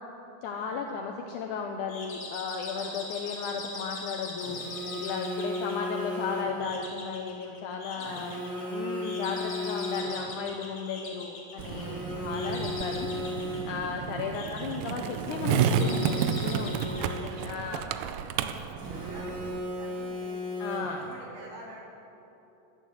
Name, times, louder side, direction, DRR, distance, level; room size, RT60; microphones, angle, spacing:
voice 1, 0.4-8.3 8.7-13.1 13.4-16.7 17.4-18.3 20.6-21.0, left 5 dB, 80° left, 2 dB, 1.9 m, -35 dB
sound 1, 1.9-18.0, left 3 dB, 45° left, 2.5 m, -42 dB
Telephone, 4.4-6.7 8.0-10.4 11.6-13.9 15.2-17.6 18.8-21.1, left 1 dB, 25° right, 2.4 m, -36 dB
voice 2, 5.2-5.7 7.8-8.9 9.5-9.7 13.7-13.8 16.8-17.9 18.2-20.5 20.8-21.8, right 1 dB, 70° right, -3 dB, 3.9 m, -49 dB
Skateboard, 11.6-19.6, right 8 dB, 90° right, 2.4 m, -31 dB
11.5 x 9.2 x 7.8 m, 3.0 s
omnidirectional pair, 4.0 m